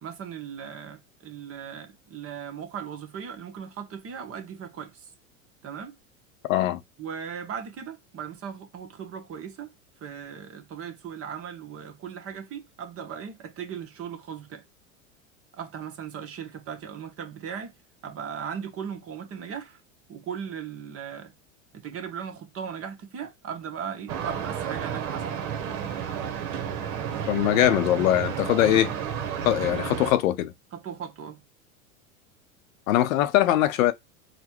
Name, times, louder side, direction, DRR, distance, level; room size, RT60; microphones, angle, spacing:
voice 1, 0.0-5.1 5.6-6.0 7.0-9.7 10.0-14.6 15.6-17.7 18.0-19.8 20.1-21.3 21.7-25.5 30.7-31.4, right 7 dB, 35° right, 1.1 m, -38 dB
voice 2, 6.5-6.8 27.3-28.9 29.4-30.5 32.9-33.9, left 13 dB, 75° left, 0.7 m, -22 dB
sound 1, 24.1-30.1, right 8 dB, 60° right, 1.1 m, -31 dB
4.1 x 2.3 x 4.4 m
hypercardioid pair, 100°, 41 cm